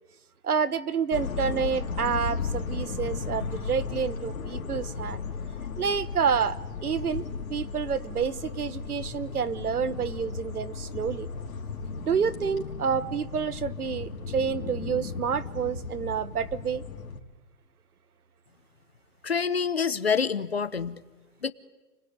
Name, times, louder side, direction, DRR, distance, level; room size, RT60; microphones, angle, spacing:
voice 1, 0.4-5.2 5.8-7.2 7.5-11.3 12.1-16.8, right 6 dB, 65° right, 16 dB, 1.4 m, -29 dB
sound 1, 1.1-17.2, left 5 dB, 55° left, 3.4 m, -35 dB
voice 2, 19.2-21.0 21.4-21.5, left 6 dB, 40° left, 13 dB, 0.9 m, -27 dB
30.0 x 21.0 x 9.6 m, 1.2 s
hypercardioid pair, 180°, 49 cm